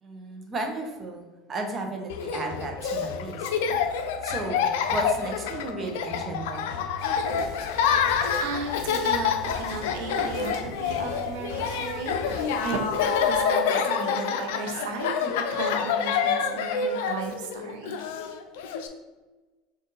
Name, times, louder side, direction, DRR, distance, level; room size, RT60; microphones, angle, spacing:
voice 1, 0.0-3.5 4.2-6.7, right 2 dB, 30° right, 2 dB, 0.8 m, -34 dB
Laughter, 2.1-18.9, left 6 dB, 80° left, 0.4 m, -27 dB
sound 1, 7.0-13.4, equal, 60° right, 1.3 m, -43 dB
voice 2, 7.7-18.0, right 4 dB, 75° right, 4 dB, 0.7 m, -35 dB
4.0 x 2.6 x 3.8 m, 1.2 s
supercardioid pair, 115°, 0 cm